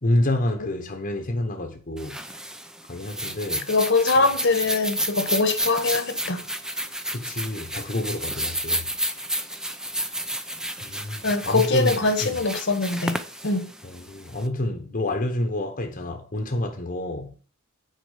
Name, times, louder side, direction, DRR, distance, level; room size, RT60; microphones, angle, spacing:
voice 1, 0.0-2.2 2.9-3.7 4.2-4.3 7.1-8.9 10.8-12.4 13.8-17.4, left 1 dB, 40° left, 1.1 m, -28 dB
sound 1, 2.0-14.4, right 1 dB, 5° right, 0.6 m, -31 dB
voice 2, 3.7-6.4 11.2-13.7, left 3 dB, 55° left, 1.3 m, -23 dB
9.4 x 4.6 x 6.4 m
head